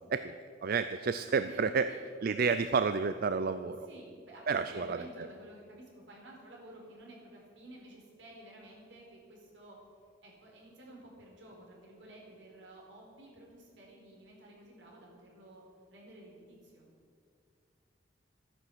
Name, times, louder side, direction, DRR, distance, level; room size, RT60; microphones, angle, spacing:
voice 1, 0.6-1.9 2.2-3.9 4.5-5.0, right 5 dB, 55° right, 11 dB, 0.4 m, -30 dB
voice 2, 1.4-2.0 3.8-9.8 10.2-15.6 15.9-16.9, right 1 dB, 75° right, -2 dB, 4.4 m, -53 dB
13.5 x 9.8 x 7.8 m, 2.2 s
head